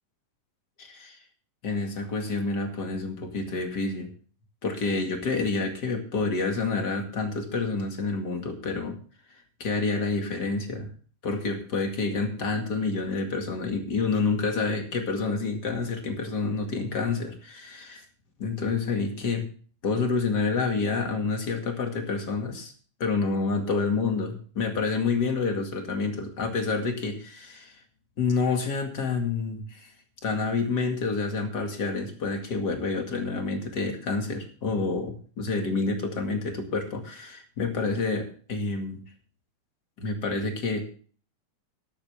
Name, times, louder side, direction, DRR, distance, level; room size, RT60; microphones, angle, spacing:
voice 1, 0.8-1.2 1.6-4.1 4.6-9.0 9.6-10.9 11.2-18.0 18.4-19.5 19.8-22.7 23.0-27.7 28.2-29.9 30.2-39.0 40.0-40.8, left 4 dB, 35° left, 4 dB, 2.3 m, -28 dB
13.5 x 11.5 x 3.4 m, 0.42 s
omnidirectional pair, 3.6 m